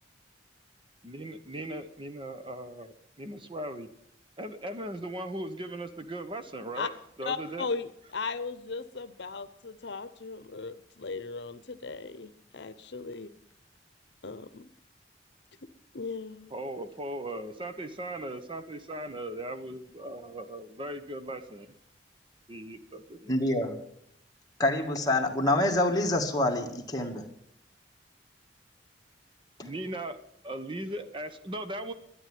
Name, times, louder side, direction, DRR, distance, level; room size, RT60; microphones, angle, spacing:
voice 1, 1.0-3.9 4.4-6.9 7.2-7.7 16.5-21.7 22.5-23.3 29.6-31.9, right 1 dB, 30° right, 9 dB, 1.0 m, -38 dB
voice 2, 7.3-13.3 14.2-14.7 15.9-16.5, left 4 dB, 70° left, 12 dB, 0.9 m, -37 dB
voice 3, 23.3-23.7 24.6-27.2, left 1 dB, 20° left, 1 dB, 2.1 m, -26 dB
12.5 x 9.9 x 9.3 m, 0.73 s
head